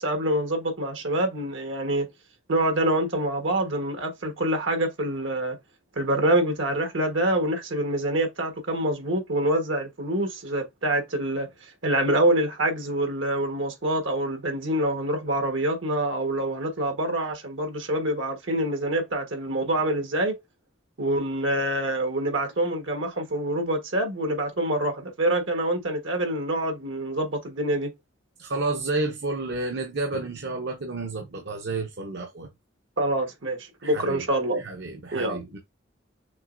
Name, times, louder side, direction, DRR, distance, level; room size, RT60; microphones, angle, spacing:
voice 1, 0.0-2.1 2.5-5.6 6.0-20.3 21.0-27.9 33.0-34.6 35.1-35.4, right 1 dB, 80° right, 1.4 m, -26 dB
voice 2, 28.4-32.5 33.8-34.2 34.6-35.6, right 2 dB, 60° right, 0.7 m, -30 dB
6.3 x 3.0 x 2.6 m
head